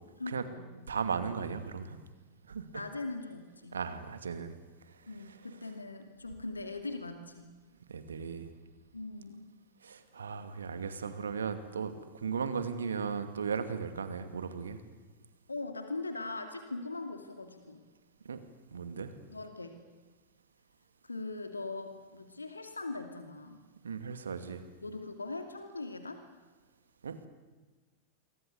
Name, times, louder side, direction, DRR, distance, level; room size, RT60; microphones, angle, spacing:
voice 1, 0.2-0.9 2.7-3.8 5.1-7.5 8.9-9.5 15.5-17.8 19.3-19.8 21.0-23.6 24.8-26.2, left 3 dB, 80° left, 7 dB, 2.4 m, -41 dB
voice 2, 0.9-2.0 2.5-2.8 3.7-4.6 4.9-5.4 7.9-8.5 9.8-14.8 18.2-18.4 18.7-19.1 23.8-24.6 27.0-27.3, right 6 dB, 70° right, 10 dB, 2.4 m, -37 dB
28.5 x 24.0 x 8.3 m, 1.3 s
figure-of-eight pair, 90°, 0 cm